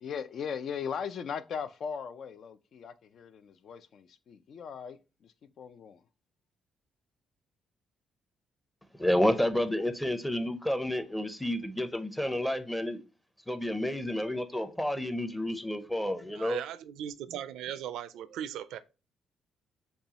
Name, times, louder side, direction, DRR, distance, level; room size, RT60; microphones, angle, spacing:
voice 1, 0.0-6.0, left 7 dB, 60° left, 0.4 m, -39 dB
voice 2, 8.9-13.0 13.5-16.6, left 1 dB, 5° left, 0.6 m, -30 dB
voice 3, 16.3-18.8, right 10 dB, 85° right, 0.4 m, -38 dB
6.7 x 2.3 x 2.8 m
cardioid pair, 90°, 0 cm